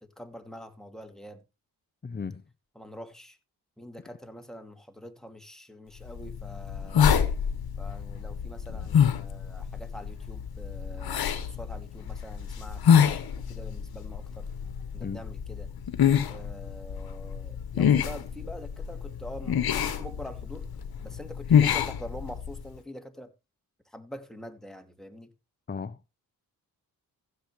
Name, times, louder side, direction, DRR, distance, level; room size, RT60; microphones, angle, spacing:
voice 1, 0.2-1.4 2.8-3.4 3.8-7.1 7.8-14.5 14.9-15.7 16.3-20.7 21.0-23.3 23.9-25.3, equal, ahead, 2.4 m, -45 dB
voice 2, 2.0-2.4 15.0-15.2 25.7-26.1, left 5 dB, 25° left, 0.9 m, -36 dB
sound 1, 6.1-22.7, left 8 dB, 60° left, 1.4 m, -27 dB
15.5 x 7.9 x 3.2 m
supercardioid pair, 45°, 42 cm